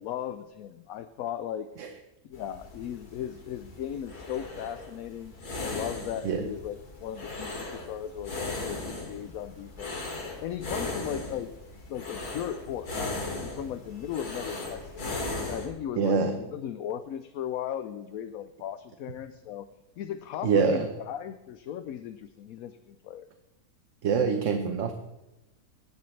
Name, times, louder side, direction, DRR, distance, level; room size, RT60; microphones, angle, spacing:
voice 1, 0.0-1.7 2.2-5.3 5.6-10.0 10.4-11.5 11.9-15.1 15.5-19.7 20.0-23.3, left 10 dB, 70° left, 11 dB, 1.0 m, -37 dB
sound 1, 2.3-15.7, left 2 dB, 85° left, 3.0 m, -38 dB
voice 2, 16.0-16.4 20.4-20.9 24.0-24.9, right 5 dB, 60° right, 6 dB, 1.1 m, -25 dB
18.0 x 11.0 x 3.2 m, 0.99 s
omnidirectional pair, 1.6 m